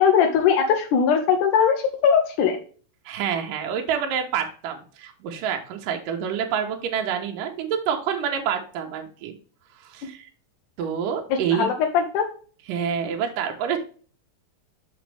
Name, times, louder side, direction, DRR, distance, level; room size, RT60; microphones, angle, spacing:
voice 1, 0.0-2.6 11.3-12.3, left 7 dB, 80° left, 4 dB, 1.8 m, -20 dB
voice 2, 3.1-9.3 9.9-10.3 10.8-11.7 12.7-13.8, right 8 dB, 75° right, 2 dB, 2.4 m, -27 dB
6.2 x 6.1 x 3.3 m, 0.41 s
omnidirectional pair, 4.3 m